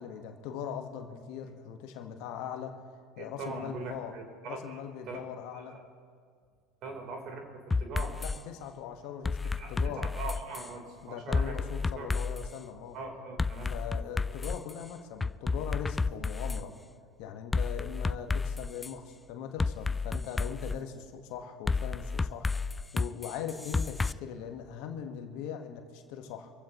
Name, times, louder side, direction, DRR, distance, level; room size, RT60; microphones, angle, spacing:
voice 1, 0.0-2.9 3.2-4.1 4.4-5.8 8.2-10.1 11.0-13.0 13.7-16.7 17.2-26.5, left 8 dB, 60° left, 5 dB, 1.4 m, -40 dB
voice 2, 3.2-4.8 5.1-5.2 5.5-5.8 6.8-7.5 7.8-8.2 9.4-11.6 11.9-12.1 12.9-13.7, right 3 dB, 50° right, 2 dB, 3.6 m, -41 dB
sound 1, 7.7-8.4 9.2-10.7 11.3-12.5 13.4-14.7 15.2-16.6 17.5-18.9 19.6-20.8 21.7-24.1, left 4 dB, 15° left, 0.3 m, -31 dB
26.5 x 15.5 x 3.0 m, 2.1 s
hypercardioid pair, 75°, 0 cm